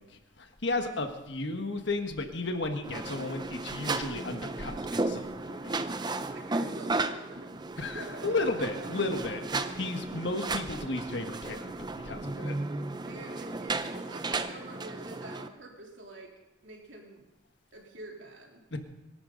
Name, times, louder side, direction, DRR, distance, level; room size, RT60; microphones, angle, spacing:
voice 1, 0.0-5.8 7.8-12.5 18.7-18.8, left 2 dB, 60° left, 5 dB, 1.5 m, -34 dB
sound 1, 2.8-15.5, right 3 dB, 20° right, 0.6 m, -34 dB
voice 2, 6.3-8.9 9.6-9.7 13.0-16.3 16.6-17.3 17.7-18.8, right 2 dB, 75° right, 0 dB, 3.3 m, -46 dB
24.0 x 12.0 x 3.9 m, 0.92 s
head